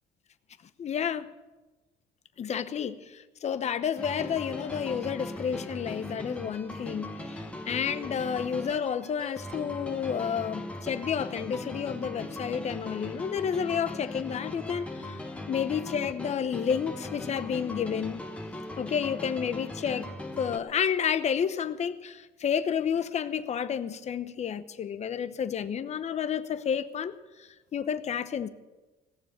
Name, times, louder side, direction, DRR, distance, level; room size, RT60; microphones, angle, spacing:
voice 1, 0.8-1.3 2.4-15.2 15.5-18.2 18.8-20.1 20.4-28.5, left 7 dB, 40° left, 0.9 m, -30 dB
sound 1, 4.0-20.6, left 1 dB, 5° left, 1.3 m, -39 dB
18.5 x 7.0 x 8.6 m
cardioid pair, 110°, 17 cm